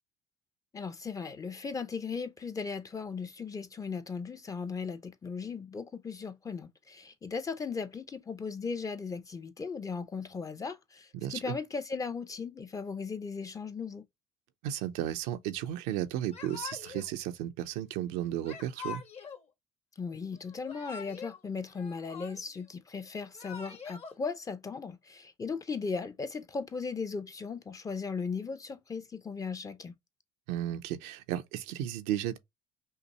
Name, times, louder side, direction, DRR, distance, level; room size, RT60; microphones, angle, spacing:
voice 1, 0.7-14.1 20.0-30.0, left 5 dB, 25° left, 0.7 m, -37 dB
voice 2, 11.1-11.6 14.6-19.0 30.5-32.4, right 12 dB, 80° right, 0.7 m, -34 dB
Yell / Crying sobbing, 16.3-17.1 18.4-19.4 20.5-21.4 21.7-22.7 23.2-24.1, left 6 dB, 45° left, 1.4 m, -44 dB
5.6 x 2.1 x 3.0 m
supercardioid pair, 85°, 14 cm